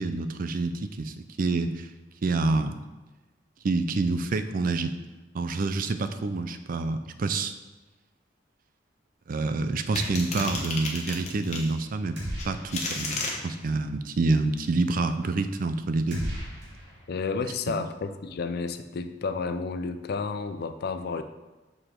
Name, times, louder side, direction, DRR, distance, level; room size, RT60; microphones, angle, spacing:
voice 1, 0.0-1.9 2.2-2.8 3.6-5.0 5.3-7.5 9.3-12.2 12.4-16.3, right 3 dB, 50° right, 10 dB, 0.4 m, -27 dB
sound 1, 10.0-11.7 12.4-13.3, left 3 dB, 40° left, 1.0 m, -32 dB
sound 2, 12.2-13.0 13.3-13.4 16.1-17.4, equal, 65° right, 1.8 m, -36 dB
voice 2, 17.1-21.2, left 4 dB, 60° left, 10 dB, 0.4 m, -31 dB
6.6 x 4.8 x 3.8 m, 1.1 s
head